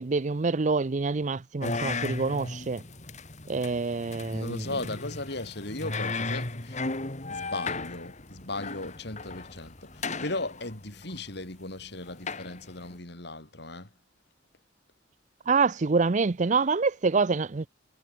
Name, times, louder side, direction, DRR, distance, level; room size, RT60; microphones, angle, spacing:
voice 1, 0.0-2.8 3.5-4.7 15.5-17.7, right 4 dB, 40° right, 0.5 m, -26 dB
sound 1, 1.6-13.0, left 3 dB, 40° left, 2.7 m, -36 dB
voice 2, 4.3-6.8 7.3-13.9, left 2 dB, 60° left, 4.9 m, -37 dB
head